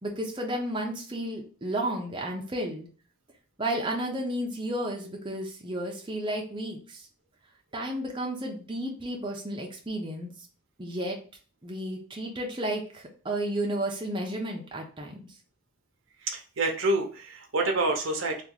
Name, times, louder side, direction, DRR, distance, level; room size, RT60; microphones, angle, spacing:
voice 1, 0.0-2.9 3.6-7.0 7.7-10.3 10.8-11.2 11.6-15.3, right 1 dB, 25° right, 0 dB, 0.7 m, -32 dB
voice 2, 16.2-18.4, right 2 dB, 70° right, 3 dB, 0.7 m, -27 dB
3.0 x 2.5 x 3.7 m, 0.39 s
head